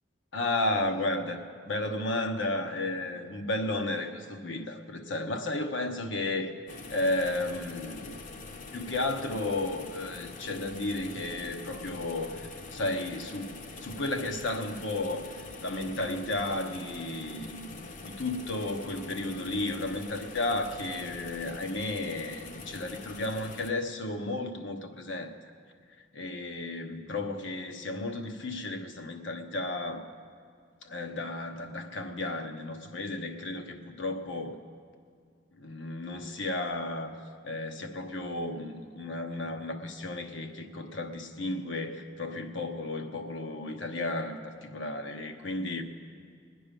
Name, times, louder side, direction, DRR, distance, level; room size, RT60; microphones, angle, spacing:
voice 1, 0.3-6.6 6.9-8.2 8.7-12.4 12.7-13.5 13.8-15.2 15.6-25.3 26.1-30.0 30.8-34.6 35.6-37.1 37.4-45.8, left 2 dB, 90° left, 5 dB, 1.1 m, -33 dB
sound 1, 6.7-23.7, left 3 dB, 40° left, 0.7 m, -44 dB
21.0 x 9.6 x 5.3 m, 2.1 s
head